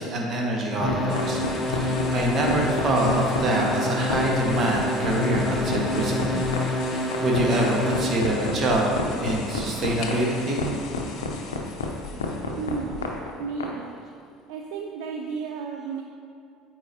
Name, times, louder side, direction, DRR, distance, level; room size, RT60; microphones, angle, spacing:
voice 1, 0.0-1.4 1.7-6.5 6.9-10.7, right 1 dB, 45° right, -1 dB, 1.2 m, -25 dB
sound 1, 0.8-8.4, left 2 dB, 15° left, 1.2 m, -27 dB
sound 2, 0.9-13.7, left 4 dB, 85° left, 0.5 m, -30 dB
sound 3, 1.1-13.4, left 3 dB, 60° left, 0.8 m, -39 dB
voice 2, 12.6-13.0 13.4-14.0 14.5-16.0, right 5 dB, 70° right, 2 dB, 0.4 m, -33 dB
8.1 x 4.8 x 2.7 m, 2.4 s
hypercardioid pair, 65°, 0 cm